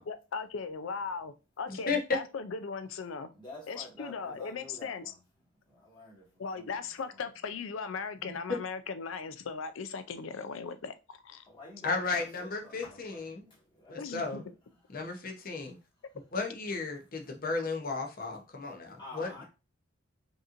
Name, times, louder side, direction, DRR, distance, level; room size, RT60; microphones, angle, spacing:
voice 1, 0.1-3.3 3.7-5.1 6.4-11.4 14.0-14.4, left 5 dB, 75° left, 0.5 m, -38 dB
voice 2, 1.7-2.0 8.2-8.3 11.8-13.4 13.9-14.4 14.9-15.8 16.3-19.4, left 4 dB, 45° left, 0.8 m, -34 dB
voice 3, 3.3-5.2 5.6-6.7 7.1-7.2 11.5-14.5 19.0-19.4, left 2 dB, 25° left, 2.0 m, -49 dB
5.1 x 2.9 x 2.5 m
head